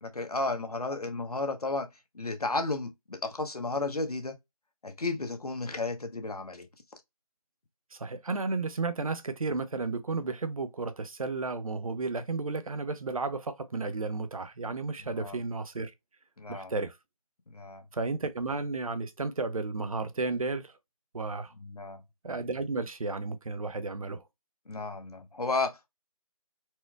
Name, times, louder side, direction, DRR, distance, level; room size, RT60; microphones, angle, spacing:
voice 1, 0.0-1.9 2.1-4.4 4.8-6.7 15.2-15.4 16.4-16.7 17.5-17.8 21.6-22.0 24.7-25.9, left 3 dB, 75° left, 0.9 m, -33 dB
voice 2, 7.9-15.9 16.5-17.0 17.9-20.7 21.1-21.5 22.2-24.2, right 3 dB, 65° right, 0.6 m, -33 dB
4.3 x 2.1 x 2.3 m
figure-of-eight pair, 160°, 20 cm